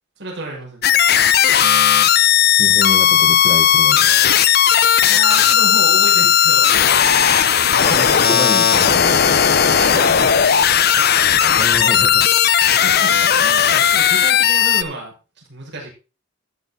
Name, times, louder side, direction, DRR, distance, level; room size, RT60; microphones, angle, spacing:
voice 1, 0.2-1.0 5.0-7.0 9.7-10.4 12.8-15.9, right 2 dB, 55° right, 6.4 m, -31 dB
sound 1, 0.8-14.8, left 9 dB, 50° left, 0.7 m, -15 dB
voice 2, 2.6-4.2 7.8-9.4 11.6-12.4, left 1 dB, 20° left, 0.9 m, -27 dB
14.5 x 6.9 x 4.0 m
head